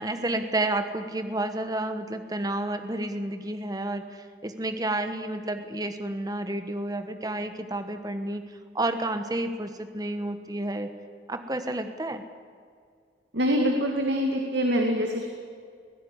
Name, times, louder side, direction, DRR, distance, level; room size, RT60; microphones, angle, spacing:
voice 1, 0.0-8.4 8.7-10.9 11.3-12.2, right 2 dB, 20° right, 8 dB, 1.2 m, -30 dB
voice 2, 13.3-15.3, equal, 70° right, 2 dB, 2.3 m, -24 dB
21.5 x 15.5 x 9.9 m, 2.1 s
head